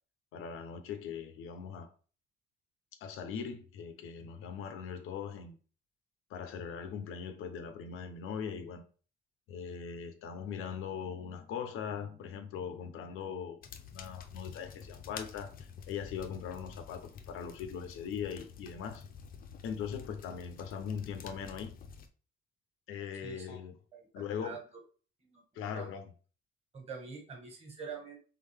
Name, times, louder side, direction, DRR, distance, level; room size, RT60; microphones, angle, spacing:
voice 1, 0.3-1.9 3.0-5.6 6.3-8.9 9.5-13.6 13.9-19.0 19.6-21.7 22.9-23.7 24.1-24.6 25.5-26.1, left 7 dB, 80° left, 0.8 m, -40 dB
sound 1, 13.6-22.1, left 6 dB, 45° left, 0.5 m, -49 dB
voice 2, 23.2-23.6 23.9-24.6 25.2-25.4 25.7-25.9 26.7-28.2, right 5 dB, 30° right, 1.4 m, -45 dB
3.9 x 3.5 x 3.4 m
cardioid pair, 150°, 21 cm